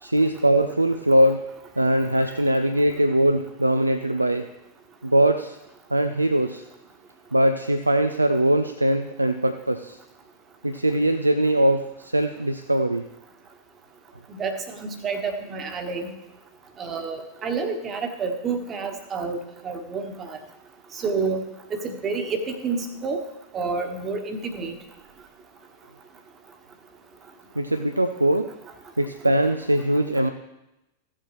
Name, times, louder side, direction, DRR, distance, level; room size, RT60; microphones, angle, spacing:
voice 1, 0.0-1.4 1.8-4.4 5.0-5.6 5.9-6.6 7.3-10.0 10.6-13.0 27.6-28.5 29.0-30.3, right 1 dB, 85° right, 8 dB, 0.4 m, -21 dB
voice 2, 14.3-16.1 16.8-19.4 19.6-20.4 21.0-21.4 21.7-23.2 23.5-24.7, right 4 dB, 25° right, 7 dB, 1.3 m, -29 dB
15.5 x 7.5 x 3.1 m, 0.92 s
figure-of-eight pair, 90°, 0 cm